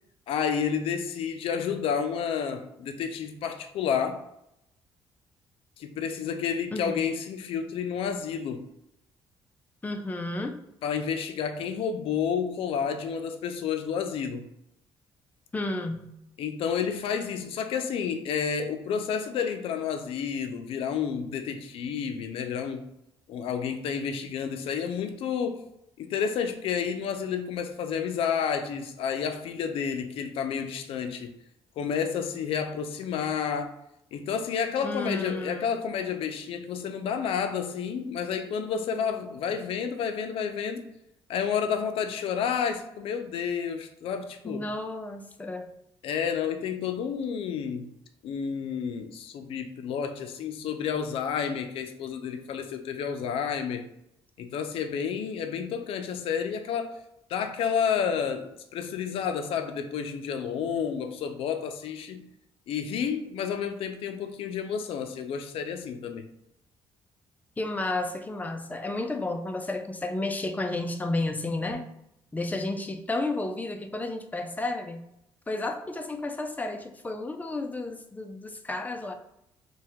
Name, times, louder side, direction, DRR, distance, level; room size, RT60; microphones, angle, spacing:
voice 1, 0.3-4.2 5.8-8.6 10.8-14.5 16.4-22.8 23.3-25.6 26.0-31.3 31.8-33.7 34.1-40.9 41.3-44.7 46.0-47.9 48.2-53.9 54.4-57.0 57.3-62.3 62.7-66.3, left 7 dB, 75° left, 7 dB, 0.4 m, -30 dB
voice 2, 6.7-7.0 9.8-10.6 15.5-16.2 34.8-35.7 44.4-45.7 67.6-71.8 72.3-75.0 75.5-79.1, left 2 dB, 15° left, 6 dB, 0.4 m, -32 dB
2.7 x 2.3 x 3.4 m, 0.81 s
cardioid pair, 90°, 10 cm